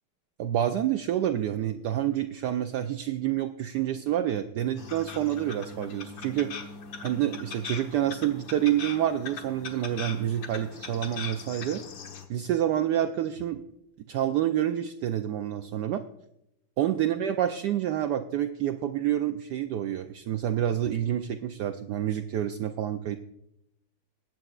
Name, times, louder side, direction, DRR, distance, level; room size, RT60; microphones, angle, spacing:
voice 1, 0.4-6.6 7.0-11.8 12.3-13.6 14.1-16.0 16.8-23.2, right 11 dB, 85° right, 8 dB, 0.9 m, -28 dB
sound 1, 4.8-12.3, left 5 dB, 65° left, 1.8 m, -41 dB
20.5 x 9.0 x 2.4 m, 0.83 s
omnidirectional pair, 2.3 m